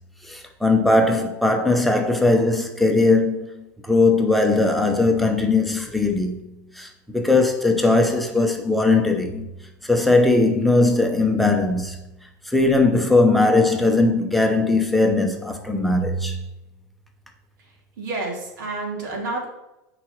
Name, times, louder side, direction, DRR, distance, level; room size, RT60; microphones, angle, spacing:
voice 1, 0.2-6.4 6.7-9.5 9.8-12.0 12.5-16.4, left 2 dB, ahead, 0.7 m, -19 dB
voice 2, 18.0-19.5, right 3 dB, 85° right, 3.2 m, -29 dB
7.3 x 4.9 x 6.0 m
supercardioid pair, 175°, 10 cm